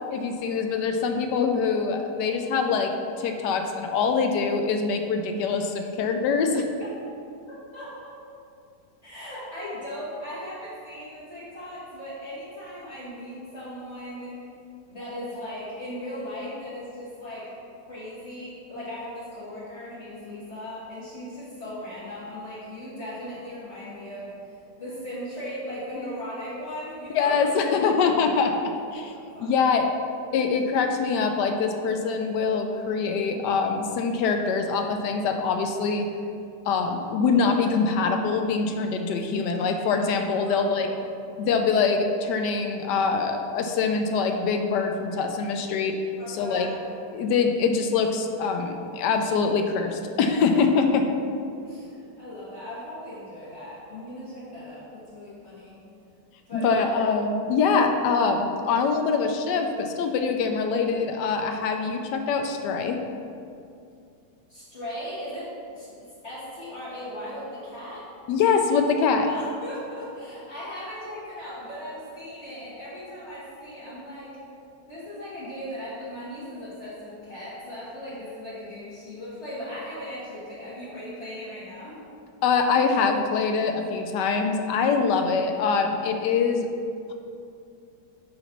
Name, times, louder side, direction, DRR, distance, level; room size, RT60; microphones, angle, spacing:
voice 1, 0.1-2.9 3.2-6.7 27.1-28.5 28.9-29.1 29.4-29.9 30.3-36.1 36.7-40.9 41.4-46.0 46.3-46.7 47.1-51.1 56.5-63.0 68.3-69.3 82.4-86.7, left 5 dB, 85° left, 5 dB, 1.2 m, -24 dB
voice 2, 7.4-8.2 9.0-14.4 14.9-17.5 17.9-24.3 24.8-27.4 29.0-29.7 30.5-30.6 40.4-41.0 46.2-46.7 49.1-49.2 51.6-55.8 56.5-56.9 64.5-65.5 65.7-65.9 66.2-68.1 69.2-74.4 74.9-82.0, left 1 dB, 40° left, -12 dB, 1.8 m, -38 dB
7.8 x 3.1 x 5.8 m, 2.5 s
omnidirectional pair, 1.8 m